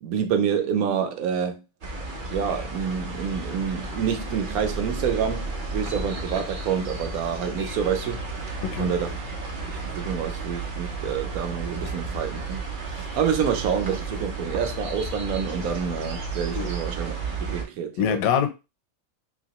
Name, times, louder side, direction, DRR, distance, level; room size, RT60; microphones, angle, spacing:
voice 1, 0.0-1.6 2.3-8.4 8.8-9.2 9.6-18.2, right 7 dB, 85° right, 1.1 m, -28 dB
sound 1, 1.8-17.6, right 3 dB, 50° right, 0.6 m, -33 dB
voice 2, 18.0-18.5, left 8 dB, 80° left, 1.0 m, -24 dB
3.0 x 2.7 x 2.8 m
omnidirectional pair, 1.5 m